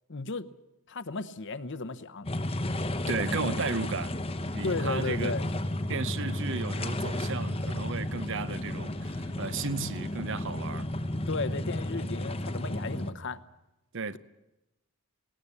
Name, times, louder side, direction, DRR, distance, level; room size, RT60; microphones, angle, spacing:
voice 1, 0.1-0.5 0.9-2.3 4.6-5.4 11.1-13.4, left 3 dB, 55° left, 0.9 m, -34 dB
sound 1, 2.2-13.1, left 1 dB, 25° left, 1.0 m, -33 dB
voice 2, 3.1-4.2 4.5-5.3 5.9-10.9 13.9-14.2, right 4 dB, 55° right, 0.8 m, -34 dB
19.0 x 18.5 x 8.5 m
head